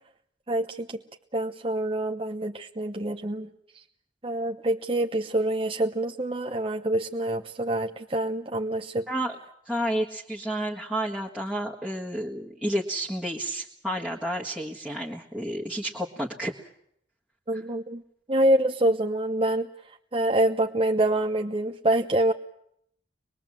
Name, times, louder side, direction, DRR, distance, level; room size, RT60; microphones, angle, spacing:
voice 1, 0.5-1.0 1.3-3.5 4.2-9.0 17.5-18.0 18.3-19.7 20.1-22.3, right 1 dB, 30° right, 3 dB, 0.8 m, -26 dB
voice 2, 9.7-16.7 17.5-17.6, right 1 dB, 5° right, -6 dB, 1.6 m, -31 dB
24.5 x 21.5 x 7.5 m, 0.74 s
head